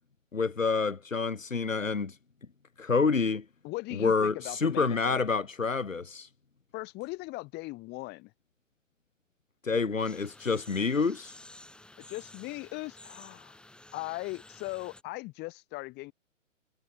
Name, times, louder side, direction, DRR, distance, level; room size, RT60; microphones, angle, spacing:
voice 1, 0.3-2.2 2.8-3.4 4.0-6.3 9.6-11.4, left 4 dB, 85° left, 1.8 m, -28 dB
voice 2, 3.6-5.2 6.7-8.3 9.7-10.1 12.0-13.6 13.9-16.1, left 22 dB, 25° left, 5.6 m, -39 dB
sound 1, 10.0-15.0, left 1 dB, ahead, 5.3 m, -52 dB
figure-of-eight pair, 125°, 38 cm